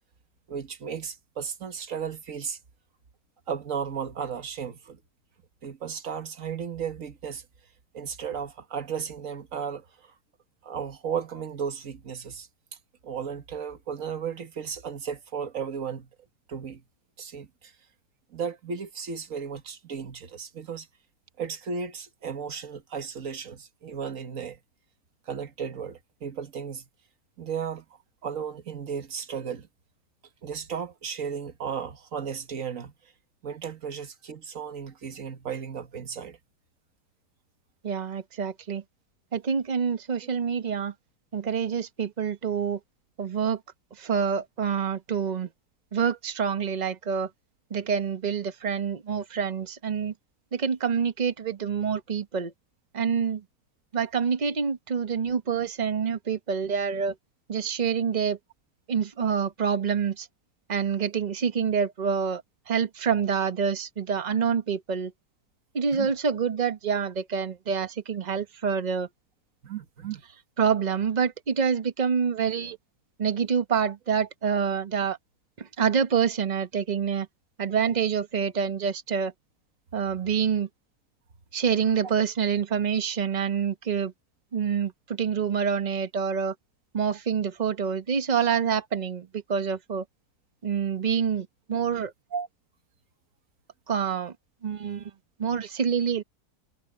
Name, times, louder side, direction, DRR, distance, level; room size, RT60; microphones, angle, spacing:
voice 1, 0.5-2.6 3.5-5.0 5.6-7.5 7.9-10.1 10.6-12.5 13.0-16.1 16.5-16.8 17.2-17.7 18.3-20.9 21.4-24.6 25.3-26.9 27.4-27.9 28.2-29.7 30.4-32.9 33.4-36.4 65.9-66.1 69.6-70.2 91.7-91.8 92.3-92.5, right 7 dB, 50° right, 1.6 m, -34 dB
voice 2, 37.8-38.8 39.3-40.9 41.3-42.8 43.2-43.6 44.0-45.5 45.9-47.3 47.7-50.1 50.5-52.5 52.9-53.4 53.9-57.2 57.5-58.4 58.9-60.3 60.7-65.1 65.7-69.1 70.6-72.8 73.2-75.2 75.6-77.3 77.6-79.3 79.9-80.7 81.5-84.1 84.5-86.5 86.9-90.0 90.6-92.1 93.9-94.3 94.6-95.1 95.4-96.2, right 7 dB, 30° right, 0.9 m, -27 dB
omnidirectional pair, 1.9 m